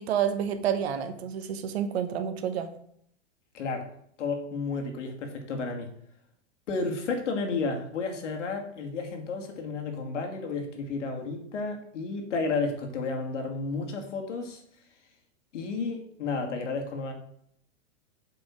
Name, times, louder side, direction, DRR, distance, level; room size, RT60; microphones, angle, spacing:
voice 1, 0.0-2.7, right 8 dB, 60° right, 9 dB, 1.2 m, -29 dB
voice 2, 3.5-3.9 4.2-5.9 6.7-14.6 15.5-17.1, left 4 dB, 80° left, 4 dB, 2.5 m, -32 dB
8.0 x 5.3 x 6.2 m, 0.68 s
supercardioid pair, 170°, 35 cm